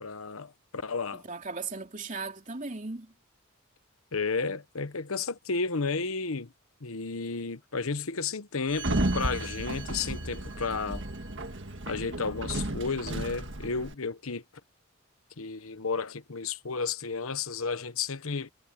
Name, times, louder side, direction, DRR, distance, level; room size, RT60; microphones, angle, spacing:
voice 1, 0.0-1.2 4.1-6.5 6.8-11.0 11.9-14.4 15.4-18.5, left 4 dB, 75° left, 1.0 m, -32 dB
voice 2, 1.1-3.1, right 4 dB, 35° right, 3.2 m, -37 dB
Sliding door, 8.7-13.9, right 1 dB, 55° right, 1.9 m, -33 dB
head